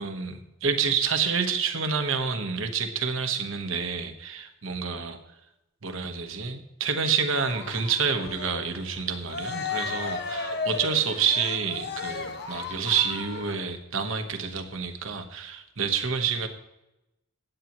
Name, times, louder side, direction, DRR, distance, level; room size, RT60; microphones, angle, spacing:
voice 1, 0.0-5.2 5.8-16.5, right 6 dB, 70° right, 7 dB, 1.3 m, -28 dB
Cheering, 7.3-13.7, left 4 dB, 55° left, 1.2 m, -35 dB
16.0 x 9.3 x 3.1 m, 0.92 s
head